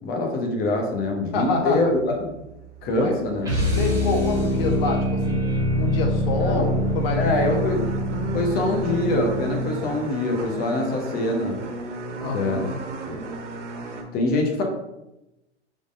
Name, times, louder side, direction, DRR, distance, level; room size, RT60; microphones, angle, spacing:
voice 1, 0.0-2.3 2.8-3.5 6.4-6.7 7.1-7.8 8.3-11.6 12.3-12.7 13.1-13.2 14.1-14.6, left 2 dB, 25° left, 2 dB, 0.9 m, -24 dB
sound 1, 1.0-14.0, right 3 dB, 85° right, 0.8 m, -37 dB
voice 2, 1.3-1.9 3.0-3.1 3.8-5.4 5.7-7.6 12.2-12.8, left 3 dB, 55° left, 3 dB, 1.1 m, -26 dB
sound 2, 3.4-9.9, equal, 10° right, 1.6 m, -25 dB
5.0 x 3.7 x 2.6 m, 0.92 s
hypercardioid pair, 125°, 35 cm